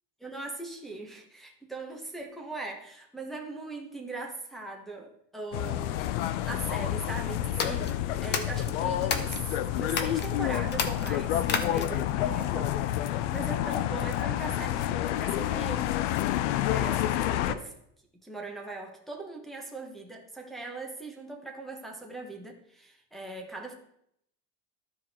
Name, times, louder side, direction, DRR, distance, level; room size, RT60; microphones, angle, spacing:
voice 1, 0.2-6.2 6.5-9.4 9.7-15.9 16.7-17.7 18.2-23.7, right 2 dB, ahead, -1 dB, 1.0 m, -40 dB
sound 1, 5.5-17.5, left 12 dB, 90° left, 0.7 m, -29 dB
sound 2, 7.5-9.4 9.9-10.3 10.7-12.1, left 6 dB, 30° left, 0.8 m, -32 dB
13.0 x 4.8 x 4.2 m, 0.72 s
cardioid pair, 150°, 35 cm